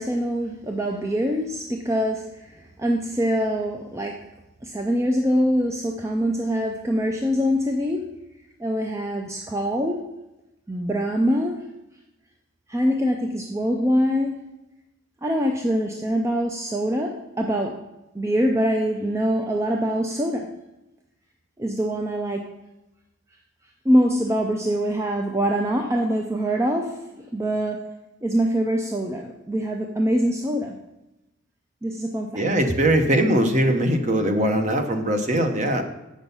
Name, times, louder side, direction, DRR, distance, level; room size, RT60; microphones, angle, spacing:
voice 1, 0.0-4.2 4.6-8.0 8.6-10.0 10.7-11.6 12.7-14.4 15.2-17.1 17.4-17.7 18.1-20.5 21.6-22.4 23.8-27.0 27.3-27.8 28.2-30.7 31.8-32.4, equal, 15° right, 2 dB, 0.5 m, -24 dB
voice 2, 32.3-35.8, right 1 dB, 35° right, 6 dB, 0.9 m, -21 dB
7.9 x 6.3 x 5.4 m, 0.95 s
head